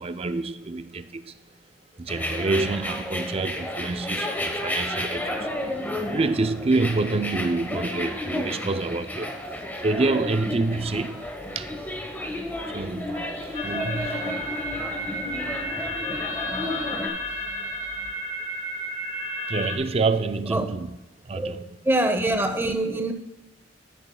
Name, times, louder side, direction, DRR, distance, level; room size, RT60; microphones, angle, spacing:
voice 1, 0.0-1.4 2.0-5.5 6.1-9.4 9.8-11.3 11.6-11.7 12.7-14.4 17.3-17.4 19.5-20.9 21.2-21.7, right 3 dB, 35° right, 0.5 m, -27 dB
sound 1, 2.1-17.1, left 1 dB, 10° left, 1.0 m, -32 dB
sound 2, 10.5-18.1, equal, 55° right, 3.3 m, -50 dB
sound 3, 13.5-19.8, equal, 40° left, 1.0 m, -32 dB
voice 2, 21.8-23.1, right 1 dB, 15° right, 0.8 m, -24 dB
12.0 x 10.5 x 2.3 m
head